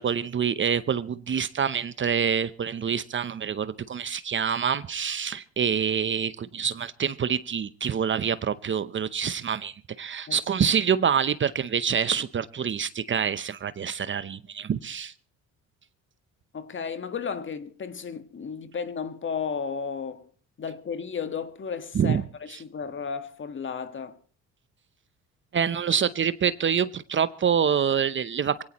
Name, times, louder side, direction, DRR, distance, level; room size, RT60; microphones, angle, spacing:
voice 1, 0.0-15.1 21.9-22.2 22.5-22.6 25.5-28.6, right 7 dB, 35° right, 0.8 m, -26 dB
voice 2, 16.5-20.3 20.6-24.2, left 6 dB, 35° left, 1.6 m, -34 dB
23.0 x 17.5 x 3.1 m
supercardioid pair, 85°, 32 cm